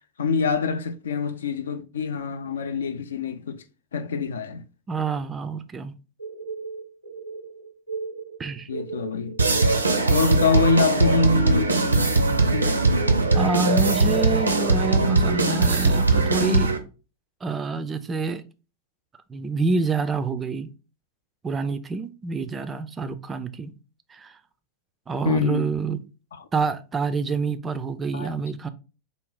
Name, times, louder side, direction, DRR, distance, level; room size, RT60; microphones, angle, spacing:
voice 1, 0.2-3.6 3.9-4.6 8.7-9.4 10.1-12.8 25.3-25.7 26.4-26.5 28.1-28.3, left 4 dB, 65° left, 0.3 m, -25 dB
voice 2, 4.9-5.9 8.4-8.7 13.3-16.8 17.4-18.4 19.3-20.7 21.4-23.7 24.1-24.4 25.1-26.0 26.5-28.7, right 4 dB, 20° right, 0.3 m, -27 dB
sound 1, 6.2-11.0, right 5 dB, 85° left, 0.7 m, -36 dB
sound 2, 9.4-16.8, right 3 dB, 80° right, 0.5 m, -20 dB
3.7 x 2.0 x 3.8 m
figure-of-eight pair, 90°, 0 cm